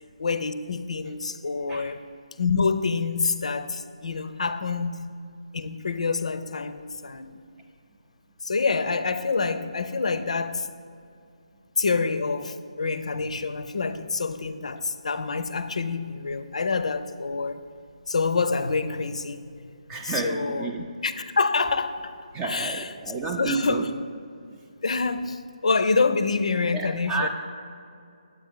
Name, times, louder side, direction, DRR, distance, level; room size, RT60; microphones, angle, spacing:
voice 1, 0.2-2.1 2.4-5.1 5.5-7.4 8.4-10.7 11.8-17.6 18.1-19.4 20.0-20.7 21.0-22.1 22.4-22.9 23.4-23.9 24.8-27.3, left 4 dB, 60° left, 0.5 m, -27 dB
voice 2, 19.9-20.9 22.3-23.8 26.7-27.3, right 4 dB, 15° right, 0.4 m, -30 dB
9.2 x 8.3 x 3.7 m
figure-of-eight pair, 150°, 4 cm